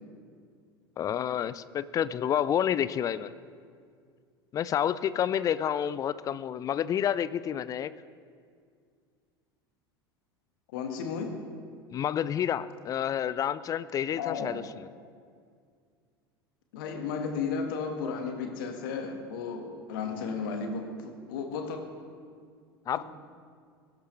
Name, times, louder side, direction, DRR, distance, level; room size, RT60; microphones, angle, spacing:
voice 1, 1.0-3.3 4.5-7.9 11.9-14.9 22.9-23.0, left 9 dB, 25° left, 17 dB, 0.4 m, -29 dB
voice 2, 10.7-11.4 14.2-14.6 16.7-21.8 23.0-23.1, left 5 dB, 55° left, 5 dB, 1.7 m, -34 dB
21.0 x 12.0 x 3.3 m, 2.1 s
figure-of-eight pair, 75°, 13 cm